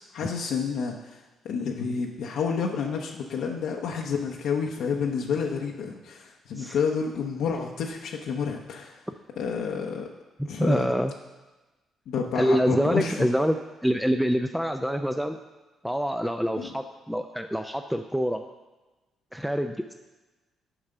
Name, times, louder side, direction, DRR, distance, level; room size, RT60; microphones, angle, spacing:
voice 1, 0.1-1.2 1.4-9.0 9.4-10.1 10.5-10.9 12.1-13.1 16.6-16.7, left 6 dB, 80° left, 0 dB, 0.7 m, -29 dB
voice 2, 10.4-11.1 12.4-13.6 13.8-15.4 15.8-18.4 19.3-19.9, equal, ahead, 6 dB, 0.4 m, -26 dB
8.7 x 4.8 x 6.6 m, 1.2 s
cardioid pair, 90°, 0 cm